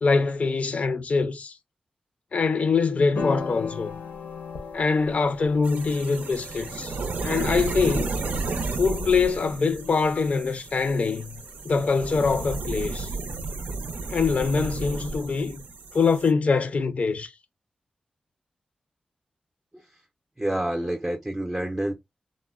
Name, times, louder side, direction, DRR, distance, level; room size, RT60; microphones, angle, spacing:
voice 1, 0.0-1.6 2.3-4.0 4.7-7.0 7.2-8.2 8.8-13.1 14.1-15.6 15.9-17.3, left 4 dB, 60° left, 0.5 m, -24 dB
sound 1, 3.2-11.6, left 4 dB, 90° left, 0.8 m, -39 dB
sound 2, 5.6-16.3, right 3 dB, 85° right, 0.5 m, -33 dB
voice 2, 20.4-21.9, right 1 dB, 15° right, 0.5 m, -28 dB
3.6 x 2.1 x 2.3 m
wide cardioid pair, 80°, 3 cm